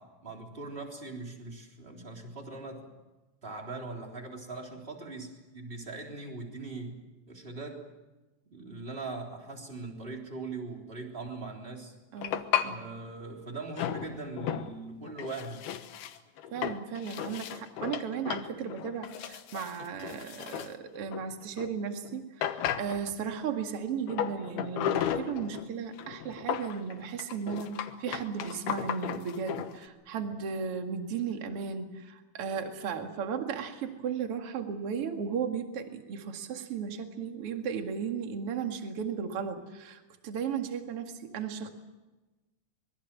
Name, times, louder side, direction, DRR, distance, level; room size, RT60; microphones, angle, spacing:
voice 1, 0.0-2.9 3.4-7.0 7.3-7.9 8.5-11.9 12.6-15.7, right 3 dB, 15° right, 1 dB, 3.5 m, -41 dB
voice 2, 12.1-12.8 16.5-41.7, right 6 dB, 45° right, 5 dB, 2.5 m, -35 dB
sound 1, 12.2-12.7 13.8-14.8 15.0-21.7 22.0-22.1 22.4-23.3 24.1-25.7 26.0-29.7, left 10 dB, 85° left, 3.2 m, -34 dB
25.0 x 22.5 x 7.5 m, 1.1 s
omnidirectional pair, 4.3 m